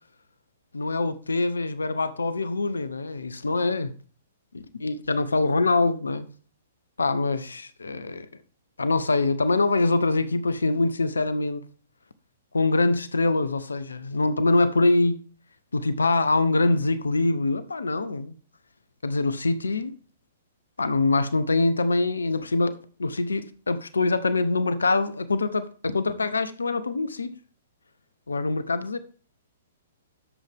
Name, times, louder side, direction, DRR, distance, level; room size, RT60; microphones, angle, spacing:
voice 1, 0.7-3.9 4.5-6.3 7.0-8.3 8.8-11.6 12.5-15.2 15.7-18.3 19.0-19.9 20.8-27.3 28.3-29.0, left 3 dB, 80° left, 1.1 m, -24 dB
11.0 x 7.5 x 3.7 m
figure-of-eight pair, 120°, 0 cm